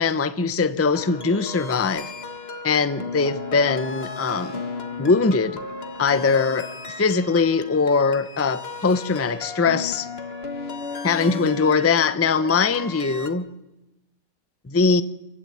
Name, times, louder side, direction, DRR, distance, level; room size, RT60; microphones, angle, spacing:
voice 1, 0.0-2.1 2.6-4.6 5.0-5.6 6.0-6.7 7.0-10.1 11.0-13.5 14.7-15.0, left 4 dB, 20° left, 12 dB, 0.4 m, -21 dB
sound 1, 0.9-13.3, left 3 dB, 35° left, 1.7 m, -35 dB
27.0 x 15.5 x 9.4 m, 0.96 s
omnidirectional pair, 1.9 m